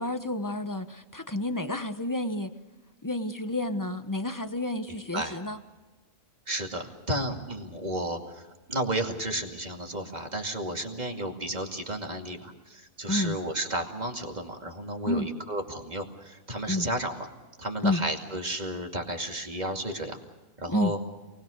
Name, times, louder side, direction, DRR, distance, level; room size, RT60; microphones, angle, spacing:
voice 1, 0.0-2.5 3.0-5.6 13.1-13.4 15.0-15.3 16.7-16.9 17.8-18.0 20.7-20.9, left 1 dB, 15° left, 9 dB, 0.8 m, -30 dB
voice 2, 4.9-5.4 6.5-17.3 17.6-20.2 20.6-21.0, right 1 dB, 25° right, 2 dB, 2.5 m, -33 dB
28.0 x 20.5 x 6.5 m, 1.2 s
omnidirectional pair, 1.6 m